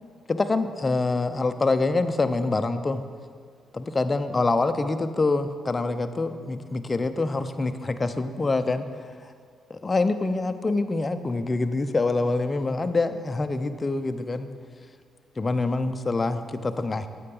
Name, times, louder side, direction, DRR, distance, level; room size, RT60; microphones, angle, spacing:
voice 1, 0.3-3.0 3.7-9.3 9.7-14.5 15.4-17.1, left 3 dB, 25° left, 9 dB, 0.6 m, -25 dB
9.7 x 7.9 x 5.4 m, 2.1 s
cardioid pair, 90°, 0 cm